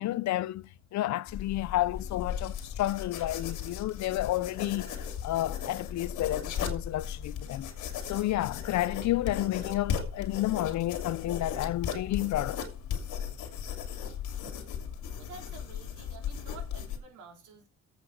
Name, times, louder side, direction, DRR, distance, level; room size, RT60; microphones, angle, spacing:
voice 1, 0.0-4.9 5.2-7.7 8.1-12.6, left 15 dB, 70° left, 0.5 m, -31 dB
sound 1, 1.3-17.0, left 8 dB, 85° left, 2.7 m, -37 dB
voice 2, 15.2-17.7, right 4 dB, 80° right, 4.0 m, -50 dB
8.2 x 6.1 x 6.3 m
cardioid pair, 90°, 30 cm